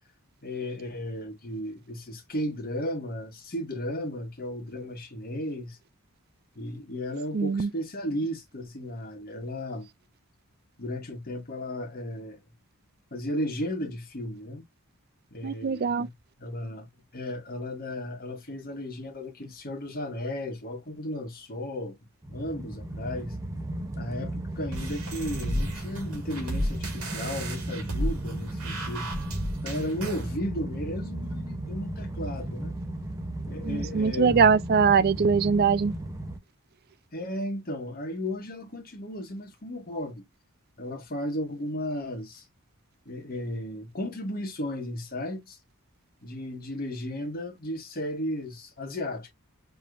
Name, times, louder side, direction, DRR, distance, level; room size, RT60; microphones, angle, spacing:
voice 1, 0.4-5.8 6.5-9.9 10.8-12.4 13.1-14.6 15.3-16.1 16.4-22.0 22.3-23.3 23.9-29.1 29.6-32.7 33.5-34.5 37.1-40.2 40.8-42.4 43.0-45.6 46.2-49.3, left 1 dB, 40° left, 1.4 m, -34 dB
voice 2, 7.3-7.7 15.4-16.1 33.6-35.9, right 6 dB, 45° right, 0.4 m, -22 dB
sound 1, 22.2-36.4, right 1 dB, 15° right, 0.7 m, -35 dB
sound 2, 24.7-30.3, equal, 70° right, 2.1 m, -33 dB
4.8 x 3.1 x 2.5 m
head